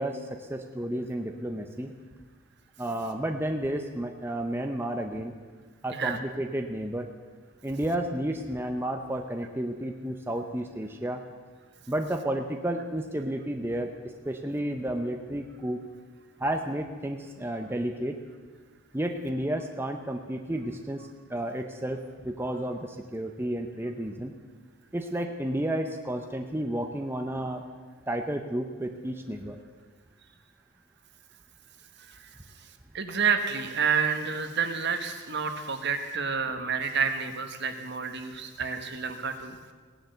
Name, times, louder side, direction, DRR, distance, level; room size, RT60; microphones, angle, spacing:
voice 1, 0.0-1.9 2.8-5.3 5.8-7.1 7.6-11.2 11.9-15.8 16.4-18.2 18.9-24.3 24.9-27.6 28.1-29.6, right 1 dB, 10° right, 4 dB, 0.7 m, -32 dB
voice 2, 32.9-39.5, right 6 dB, 50° right, 7 dB, 1.4 m, -29 dB
17.0 x 10.5 x 7.9 m, 1.5 s
head